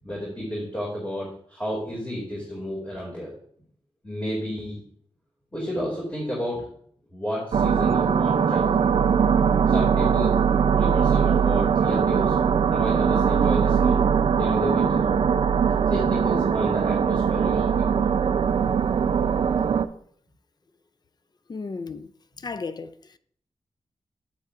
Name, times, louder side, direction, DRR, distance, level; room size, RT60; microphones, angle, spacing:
voice 1, 0.0-3.3 4.0-4.8 5.5-6.6 7.1-8.8 9.7-10.3 10.8-12.4 12.7-14.0 14.4-15.1 15.9-18.1, equal, 15° left, 2.3 m, -31 dB
sound 1, 7.5-19.9, right 7 dB, 60° right, 0.4 m, -21 dB
voice 2, 21.5-22.1 22.4-23.2, left 4 dB, 40° left, 0.4 m, -34 dB
8.3 x 7.9 x 2.4 m
wide cardioid pair, 95°, 11 cm